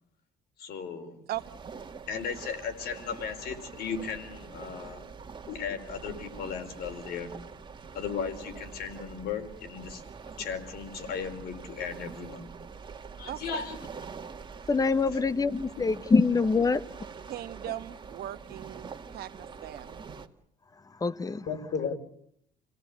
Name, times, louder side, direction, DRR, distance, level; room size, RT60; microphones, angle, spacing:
voice 1, 0.6-1.2 2.1-5.0 5.5-7.3 7.9-10.0 10.4-12.5 13.2-13.8 15.8-15.9 21.5-22.0, left 6 dB, 70° left, 4.4 m, -36 dB
sound 1, 1.3-20.3, right 5 dB, 30° right, 2.0 m, -45 dB
voice 2, 13.3-13.6 17.3-20.0, right 14 dB, 65° right, 1.1 m, -39 dB
voice 3, 14.7-16.8 21.0-21.5, left 4 dB, 20° left, 1.0 m, -24 dB
29.5 x 17.5 x 8.5 m
cardioid pair, 110°, 17 cm